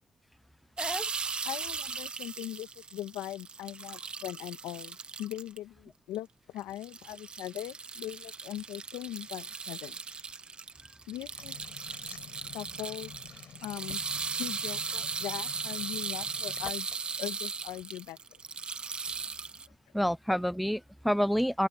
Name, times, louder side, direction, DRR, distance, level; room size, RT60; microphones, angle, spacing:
sound 1, 0.8-5.6 6.1-6.2 6.6-19.7, right 5 dB, 25° right, 0.9 m, -38 dB
voice 1, 1.4-6.3 6.5-10.0 11.1-11.6 12.5-13.1 13.6-14.0 14.4-16.9 17.2-18.2, left 14 dB, 80° left, 1.5 m, -40 dB
sound 2, 11.4-17.1, left 10 dB, 50° left, 7.3 m, -50 dB
voice 2, 19.9-21.7, equal, ahead, 0.3 m, -28 dB
open air
cardioid pair, 155°, 4 cm